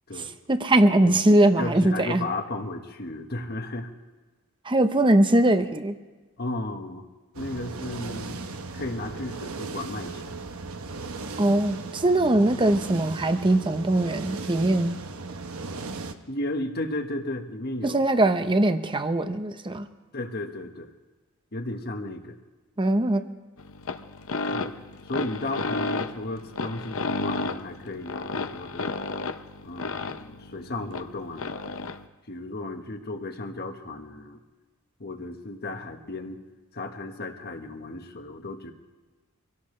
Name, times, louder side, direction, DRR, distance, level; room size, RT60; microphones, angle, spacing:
voice 1, 0.2-2.3 4.6-5.9 11.4-15.0 17.8-19.9 22.8-23.2, right 1 dB, 25° right, 9 dB, 0.8 m, -21 dB
voice 2, 1.0-3.9 6.4-7.0 7.3-8.4 8.7-10.3 16.3-18.0 20.1-20.9 21.5-22.4 24.5-24.7 25.0-29.0 29.6-31.6 32.3-34.4 35.0-36.4 36.7-38.7, left 2 dB, 50° left, 5 dB, 1.4 m, -34 dB
sound 1, 7.3-16.1, right 3 dB, 75° right, 1.0 m, -37 dB
sound 2, 23.6-32.1, left 3 dB, 70° left, 0.8 m, -32 dB
25.5 x 17.0 x 3.3 m, 1.3 s
head